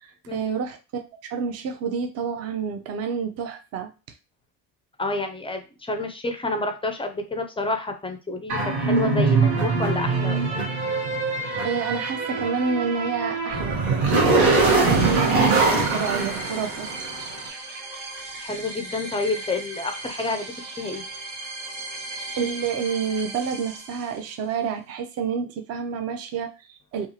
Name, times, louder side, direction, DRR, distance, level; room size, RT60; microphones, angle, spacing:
voice 1, 0.0-1.0 1.3-3.9 11.6-13.8 14.2-16.9 22.4-27.1, right 6 dB, 35° right, 6 dB, 0.5 m, -29 dB
voice 2, 5.0-10.7 18.4-21.0, left 2 dB, 15° left, 6 dB, 0.4 m, -29 dB
sound 1, 8.5-17.2, right 3 dB, 90° right, 1.1 m, -22 dB
sound 2, 14.6-24.5, right 2 dB, 65° right, 1.0 m, -37 dB
2.6 x 2.5 x 2.7 m, 0.30 s
supercardioid pair, 85°, 42 cm